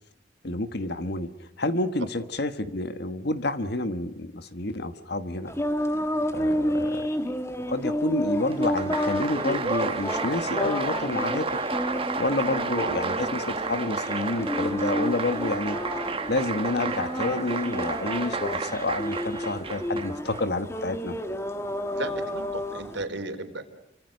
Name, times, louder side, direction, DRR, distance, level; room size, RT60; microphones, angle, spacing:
voice 1, 0.4-5.5 6.3-7.3 7.7-11.6 12.2-15.8 16.3-21.1, left 2 dB, 55° left, 10 dB, 1.5 m, -29 dB
sound 1, 5.5-23.1, equal, 15° left, 1.6 m, -31 dB
Applause, 8.5-20.4, right 4 dB, 30° right, 1.3 m, -31 dB
voice 2, 21.9-23.6, right 2 dB, 70° right, 7 dB, 3.8 m, -34 dB
29.5 x 25.5 x 6.6 m, 0.86 s
head